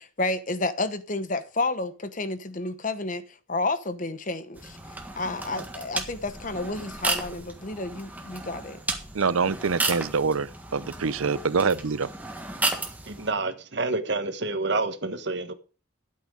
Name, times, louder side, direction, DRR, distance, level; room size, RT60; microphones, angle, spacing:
voice 1, 0.0-3.2 3.5-4.8 5.2-8.8, left 2 dB, 40° left, 1.0 m, -30 dB
sound 1, 4.5-13.3, right 2 dB, 10° right, 1.6 m, -33 dB
voice 2, 9.1-12.1, right 5 dB, 80° right, 0.6 m, -25 dB
voice 3, 13.1-15.5, right 3 dB, 55° right, 1.4 m, -28 dB
12.5 x 8.8 x 5.1 m
head